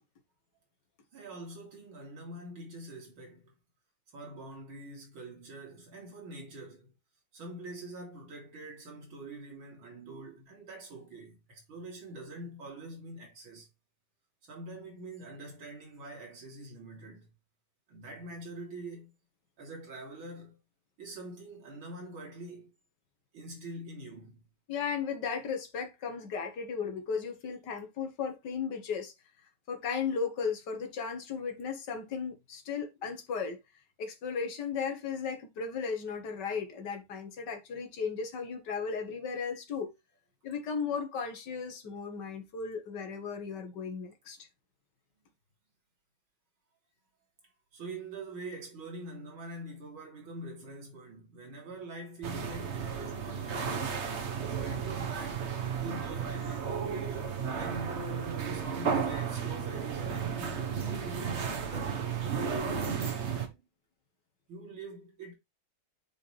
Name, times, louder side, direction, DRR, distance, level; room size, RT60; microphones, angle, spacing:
voice 1, 1.1-3.5 4.1-6.9 7.3-13.7 14.4-17.3 17.9-19.1 19.6-20.6 21.0-22.7 23.3-24.4 47.7-54.1 54.4-55.5 55.8-57.9 58.4-63.6 64.5-65.3, right 2 dB, 80° right, 4.1 m, -45 dB
voice 2, 24.7-29.1 29.7-33.6 34.0-39.9 40.4-44.4, left 6 dB, 60° left, 2.1 m, -35 dB
sound 1, 52.2-63.5, right 6 dB, 40° right, 1.2 m, -33 dB
8.8 x 4.9 x 3.3 m
omnidirectional pair, 2.2 m